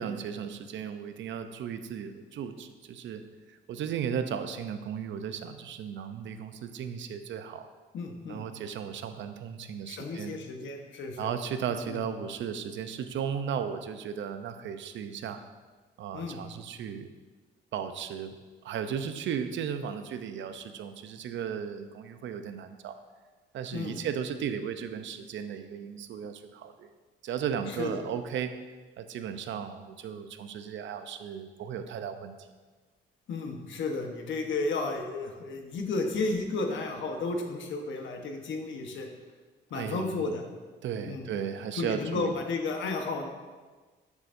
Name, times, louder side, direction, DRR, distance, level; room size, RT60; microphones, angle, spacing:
voice 1, 0.0-3.2 3.5-7.7 8.3-10.4 11.2-15.4 16.0-17.1 17.7-18.4 18.6-22.9 23.5-26.9 27.2-28.5 29.0-32.3 39.7-40.3 40.8-42.3, right 8 dB, 70° right, 9 dB, 0.7 m, -35 dB
voice 2, 7.9-8.4 9.9-11.3 11.9-12.0 16.1-16.4 23.7-24.0 27.8-28.0 33.3-39.1 39.7-40.5 41.1-41.3 41.7-43.2, left 3 dB, 70° left, 3 dB, 1.2 m, -33 dB
10.5 x 7.3 x 2.6 m, 1.4 s
cardioid pair, 90°, 20 cm